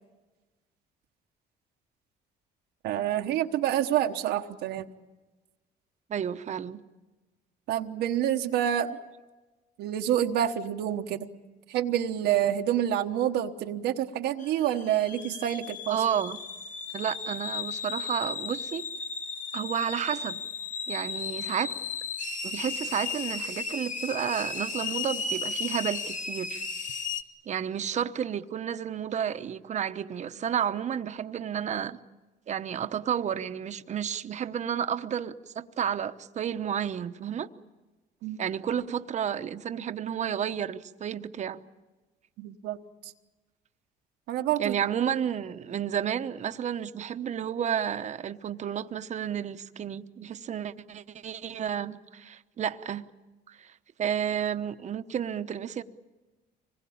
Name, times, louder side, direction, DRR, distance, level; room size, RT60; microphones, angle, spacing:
voice 1, 2.8-4.9 7.7-9.0 9.8-11.3 11.7-16.0 38.2-38.4 42.4-42.8 44.3-44.8, right 11 dB, 80° right, 4 dB, 1.2 m, -27 dB
voice 2, 6.1-6.8 15.9-16.4 16.9-18.8 19.5-20.4 20.9-21.7 22.4-26.6 27.5-32.0 32.5-37.5 38.4-41.6 44.6-53.1 53.5-53.7 54.0-55.8, right 8 dB, 45° right, 10 dB, 1.0 m, -31 dB
sound 1, 14.4-27.2, left 4 dB, 50° left, 1.7 m, -35 dB
25.5 x 20.5 x 8.6 m, 1.2 s
cardioid pair, 110°, 17 cm